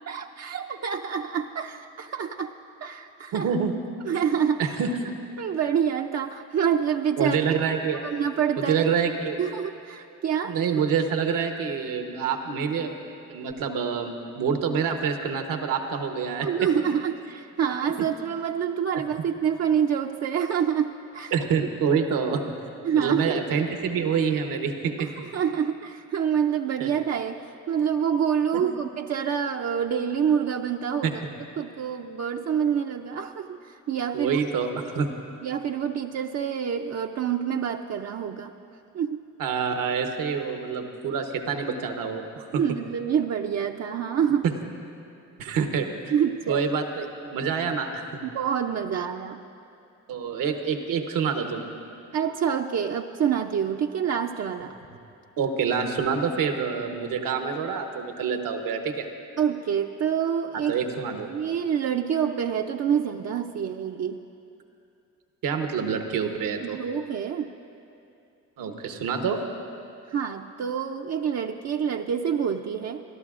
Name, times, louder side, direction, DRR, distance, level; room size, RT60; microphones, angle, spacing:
voice 1, 0.1-2.5 2.8-3.5 4.0-4.8 5.4-7.4 8.0-8.9 9.4-10.6 16.4-21.4 22.8-23.4 25.0-31.2 31.6-34.4 35.4-38.5 38.9-39.3 42.5-44.5 45.5-45.6 46.1-46.6 48.2-49.4 52.1-54.7 59.4-60.7 61.3-64.2 66.6-67.5 70.1-73.0, right 8 dB, 55° right, 3 dB, 0.5 m, -27 dB
voice 2, 3.3-3.7 4.6-4.9 7.2-8.0 8.6-9.4 10.5-16.5 18.9-19.0 21.3-22.4 22.9-25.1 26.8-26.9 28.5-28.6 31.0-31.1 34.1-35.1 39.4-42.6 44.4-44.5 45.4-45.9 46.5-48.2 50.1-51.7 55.4-59.1 60.7-61.3 65.4-66.8 68.6-69.4, right 6 dB, 80° right, 5 dB, 1.1 m, -27 dB
28.5 x 12.5 x 2.5 m, 2.7 s
cardioid pair, 75°, 33 cm